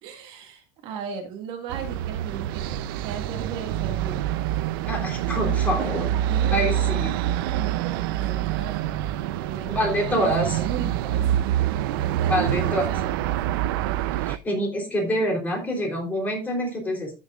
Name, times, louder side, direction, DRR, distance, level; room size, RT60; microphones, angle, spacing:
voice 1, 0.0-4.4 5.8-6.7 7.5-8.9 9.3-11.4 12.0-13.3, right 7 dB, 45° right, 3 dB, 1.9 m, -36 dB
sound 1, 1.7-14.4, right 12 dB, 75° right, 0.6 m, -26 dB
voice 2, 4.8-6.0 6.5-7.1 9.7-10.6 12.3-12.9 14.2-17.1, equal, 15° left, 0 dB, 3.4 m, -26 dB
15.0 x 6.6 x 2.4 m, 0.30 s
cardioid pair, 170°, 12 cm